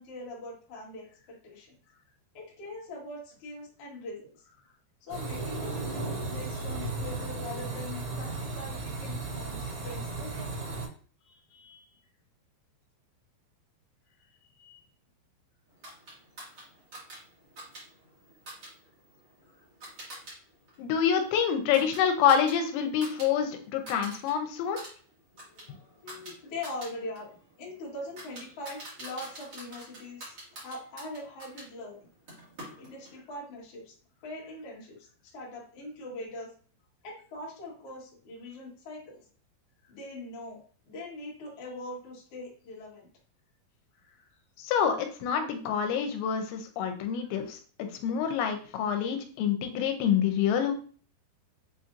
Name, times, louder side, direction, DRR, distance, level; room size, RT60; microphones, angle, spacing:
voice 1, 0.0-2.0 2.3-10.5 11.2-12.0 14.5-14.8 26.0-32.1 32.8-34.0 34.2-36.5 37.0-39.2 39.8-40.6 40.8-43.1 44.0-44.3 47.2-47.4, left 1 dB, 60° left, -5 dB, 1.6 m, -42 dB
sound 1, 5.1-10.9, right 3 dB, 65° right, 3.0 m, -35 dB
sound 2, 15.8-20.4 20.7-23.3 23.6-24.3 24.6-31.7 32.3-33.2, right 1 dB, 50° right, 1.2 m, -47 dB
voice 2, 20.8-24.8 44.6-50.7, left 8 dB, 85° left, 6 dB, 2.8 m, -27 dB
7.4 x 2.6 x 2.5 m, 0.41 s
omnidirectional pair, 5.2 m